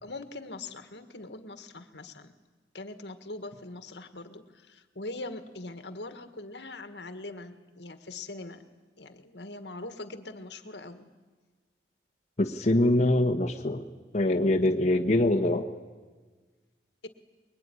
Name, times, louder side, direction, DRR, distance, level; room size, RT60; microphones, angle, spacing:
voice 1, 0.0-2.3 2.7-8.6 9.0-11.1, left 2 dB, 75° left, 9 dB, 1.8 m, -42 dB
voice 2, 12.4-13.9 14.1-15.7, left 1 dB, 40° left, 2 dB, 1.4 m, -24 dB
24.5 x 22.5 x 10.0 m, 1.3 s
head